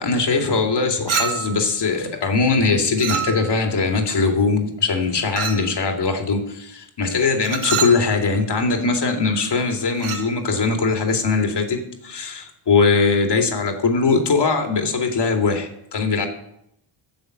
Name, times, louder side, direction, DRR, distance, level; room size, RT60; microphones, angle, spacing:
voice 1, 0.0-16.3, left 4 dB, 55° left, 4 dB, 2.6 m, -21 dB
Chink clink, 1.1-1.6 3.0-3.7 5.4-5.7 7.4-8.0 9.9-10.3, right 7 dB, 80° right, 1.5 m, -26 dB
11.5 x 7.1 x 7.8 m, 0.79 s
supercardioid pair, 55°, 50 cm